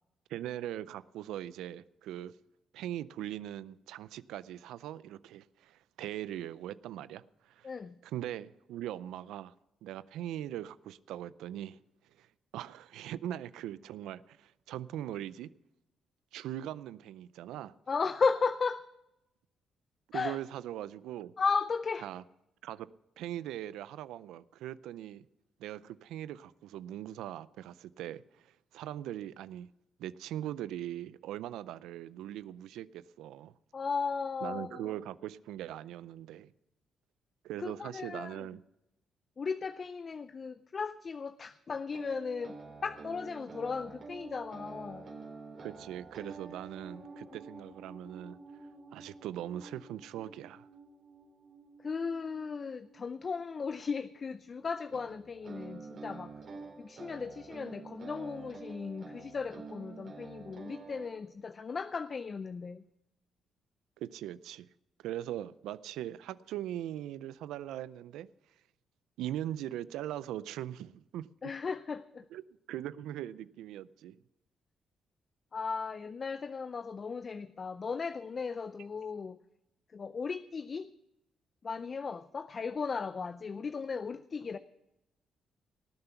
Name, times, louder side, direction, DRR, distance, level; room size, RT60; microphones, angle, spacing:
voice 1, 0.3-2.3 2.7-7.7 8.0-9.5 9.8-11.8 12.2-12.3 12.5-15.5 16.3-17.7 20.1-21.3 22.0-22.2 22.6-22.9 23.2-25.2 25.6-29.7 30.0-33.5 34.4-36.5 37.4-38.6 45.6-48.4 48.9-50.7 64.0-64.7 65.0-68.3 69.2-71.5 72.3-72.4 72.7-74.2, right 12 dB, 90° right, 0.4 m, -40 dB
voice 2, 7.6-7.9 17.9-18.9 20.1-20.4 21.4-22.1 33.7-35.0 37.6-38.5 39.4-42.6 42.8-45.1 51.8-56.3 56.8-62.8 71.4-72.3 75.5-79.4 79.9-80.9 81.6-84.6, left 5 dB, 40° left, 0.5 m, -36 dB
sound 1, 41.9-53.8 54.9-61.1, right 4 dB, 55° right, 4.0 m, -49 dB
19.0 x 7.8 x 5.8 m
cardioid pair, 90°, 0 cm